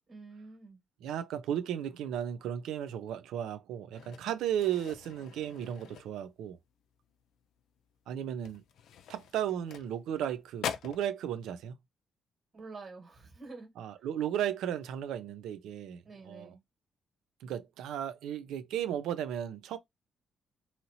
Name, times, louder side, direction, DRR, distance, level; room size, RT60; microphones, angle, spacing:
voice 1, 0.1-0.8 12.5-13.7 16.0-16.6, right 3 dB, 45° right, 1.7 m, -48 dB
voice 2, 1.0-6.6 8.1-8.6 9.1-11.8 13.8-16.6 17.4-19.8, right 10 dB, 85° right, 0.4 m, -35 dB
sound 1, 3.9-6.6 6.9-7.2 7.6-7.7 8.3-10.3 10.6-11.1, left 8 dB, 75° left, 0.4 m, -43 dB
2.8 x 2.7 x 2.8 m
cardioid pair, 90°, 0 cm